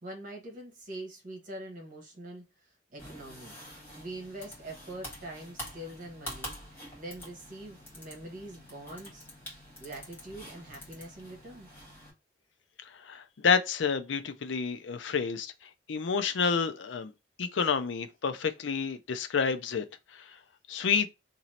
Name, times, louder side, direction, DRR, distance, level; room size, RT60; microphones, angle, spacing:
voice 1, 0.0-3.6 4.0-9.3 9.8-11.7, right 1 dB, 45° right, 1.3 m, -44 dB
sound 1, 3.0-12.1, equal, 10° left, 1.5 m, -46 dB
voice 2, 13.1-15.5 15.9-17.1 17.4-19.8 20.7-21.1, left 6 dB, 85° left, 0.5 m, -29 dB
3.0 x 2.7 x 4.2 m
head